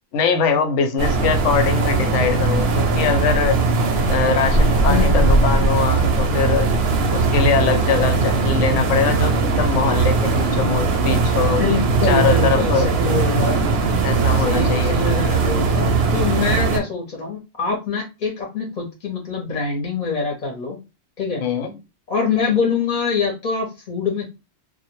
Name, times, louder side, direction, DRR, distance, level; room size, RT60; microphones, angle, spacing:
voice 1, 0.1-3.6 4.1-6.7 7.1-11.6 12.0-12.9 14.0-15.0 21.4-21.7, left 6 dB, 85° left, 0.9 m, -22 dB
sound 1, 1.0-16.8, right 3 dB, 65° right, 0.7 m, -19 dB
voice 2, 4.8-5.5 11.4-13.6 14.4-20.8 21.2-21.4 22.1-24.3, left 4 dB, 45° left, 0.7 m, -24 dB
2.1 x 2.1 x 2.9 m
omnidirectional pair, 1.2 m